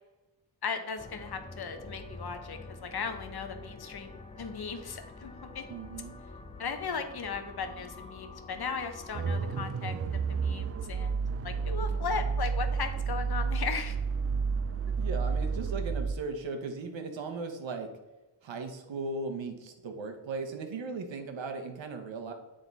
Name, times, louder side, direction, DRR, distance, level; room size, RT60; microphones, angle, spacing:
voice 1, 0.6-5.6 6.6-11.2 11.4-14.0, left 5 dB, 60° left, 7 dB, 0.8 m, -37 dB
sound 1, 1.0-9.7, left 3 dB, 15° left, 0.5 m, -47 dB
voice 2, 5.7-6.2 15.0-17.9 18.4-22.3, right 3 dB, 90° right, 5 dB, 1.0 m, -37 dB
sound 2, 9.1-16.1, right 5 dB, 35° right, 0.4 m, -31 dB
9.2 x 3.8 x 4.0 m, 1.1 s
wide cardioid pair, 110°, 44 cm